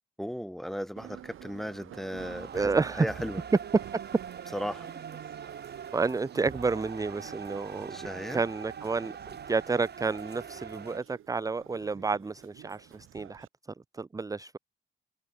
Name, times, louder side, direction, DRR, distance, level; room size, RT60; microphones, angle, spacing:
voice 1, 0.2-2.7 3.0-3.4 4.5-4.9 7.9-8.4, equal, ahead, 1.1 m, -36 dB
Subway metro underground, 1.0-13.5, right 12 dB, 85° right, 1.7 m, -49 dB
sound 1, 2.2-11.0, right 7 dB, 55° right, 1.5 m, -44 dB
voice 2, 2.5-3.1 5.9-9.1 9.5-13.5 13.9-14.6, right 4 dB, 15° right, 0.5 m, -30 dB
cardioid pair, 65°, 21 cm